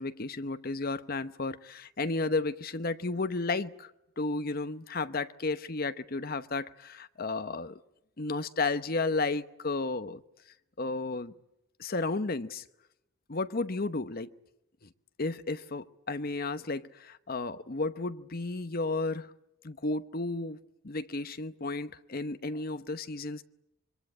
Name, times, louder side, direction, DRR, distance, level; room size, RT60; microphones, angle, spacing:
voice 1, 0.0-7.8 8.2-10.2 10.8-11.3 11.8-12.6 13.3-14.3 15.2-19.3 19.6-23.4, left 3 dB, 45° left, 0.9 m, -33 dB
26.0 x 23.0 x 8.5 m
head